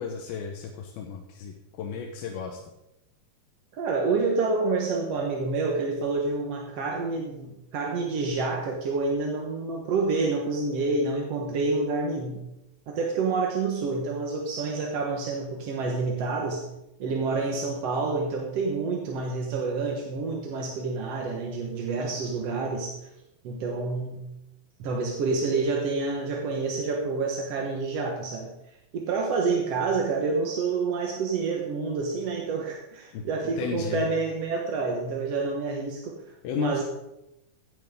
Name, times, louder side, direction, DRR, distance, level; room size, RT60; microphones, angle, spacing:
voice 1, 0.0-2.6 33.1-33.2 33.6-34.1 36.4-36.8, left 6 dB, 80° left, 1 dB, 2.9 m, -33 dB
voice 2, 3.7-12.4 12.9-16.6 17.0-23.0 23.4-24.2 24.8-28.5 28.9-36.2 36.6-36.8, right 4 dB, 60° right, 0 dB, 1.8 m, -28 dB
15.5 x 10.5 x 3.7 m, 0.88 s
omnidirectional pair, 4.3 m